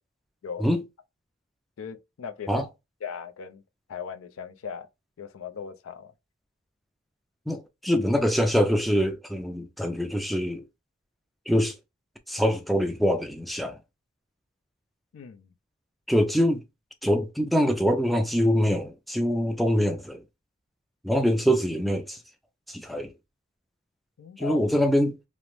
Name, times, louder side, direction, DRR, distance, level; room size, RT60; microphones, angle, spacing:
voice 1, 1.8-2.6 3.0-3.6 3.9-4.9 5.2-6.1 15.1-15.5 24.2-24.6, left 7 dB, 85° left, 0.4 m, -38 dB
voice 2, 7.5-10.6 11.5-11.7 12.3-13.8 16.1-16.6 17.0-20.2 21.0-22.2 22.7-23.1 24.4-25.2, equal, ahead, 0.3 m, -24 dB
2.4 x 2.1 x 2.9 m
head